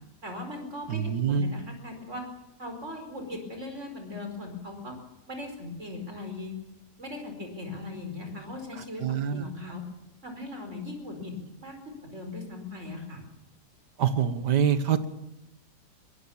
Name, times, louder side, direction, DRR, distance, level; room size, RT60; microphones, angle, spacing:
voice 1, 0.2-2.3 2.6-4.9 5.3-6.5 7.0-9.0 9.3-9.8 10.2-13.2, left 2 dB, 45° right, 5 dB, 5.1 m, -39 dB
voice 2, 0.9-1.5 9.0-9.4 14.0-15.1, right 7 dB, 80° right, 11 dB, 1.8 m, -25 dB
22.5 x 20.5 x 7.2 m, 0.91 s
omnidirectional pair, 1.8 m